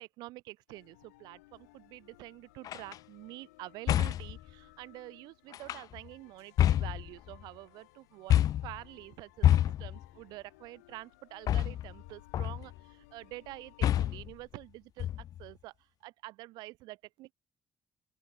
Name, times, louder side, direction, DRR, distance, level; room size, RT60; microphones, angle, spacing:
voice 1, 0.0-8.3 8.6-15.7 16.0-17.3, right 19 dB, 65° right, 1.5 m, -47 dB
sound 1, 0.7-14.3, left 21 dB, 75° left, 2.7 m, -60 dB
sound 2, 2.6-3.0 3.9-4.4 5.5-6.1 6.6-7.5 8.3-8.8 9.4-10.1 11.5-12.0 12.3-12.8 13.8-14.3 15.0-15.5, left 11 dB, 55° left, 0.5 m, -27 dB
open air
figure-of-eight pair, 45°, 8 cm